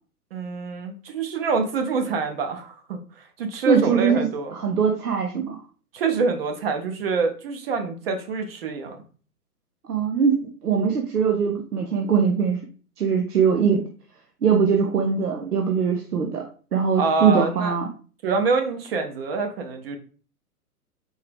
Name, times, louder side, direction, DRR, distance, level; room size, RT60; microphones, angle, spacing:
voice 1, 0.3-4.5 5.9-9.0 17.0-17.7 18.2-20.0, right 4 dB, 40° right, 5 dB, 0.8 m, -26 dB
voice 2, 3.7-5.6 9.9-10.4 10.6-12.6 13.0-13.9 14.4-16.4 16.7-17.9, right 6 dB, 75° right, 2 dB, 0.8 m, -21 dB
4.6 x 3.3 x 3.4 m, 0.40 s
figure-of-eight pair, 120°, 47 cm